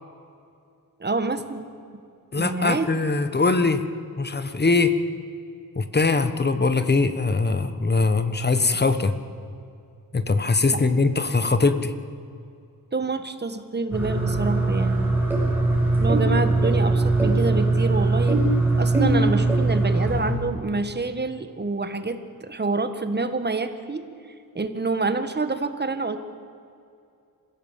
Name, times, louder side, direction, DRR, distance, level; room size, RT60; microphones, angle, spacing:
voice 1, 1.0-1.7 2.4-2.9 10.7-10.8 12.9-15.1 16.0-18.4 18.7-24.0 24.5-26.2, right 3 dB, 30° right, 9 dB, 1.6 m, -27 dB
voice 2, 2.3-3.8 4.2-4.9 5.7-9.1 10.1-11.9, left 3 dB, 30° left, 10 dB, 1.3 m, -21 dB
sound 1, 13.9-20.3, right 2 dB, 5° right, 5.8 m, -21 dB
26.5 x 16.0 x 7.5 m, 2.5 s
wide cardioid pair, 120°, 35 cm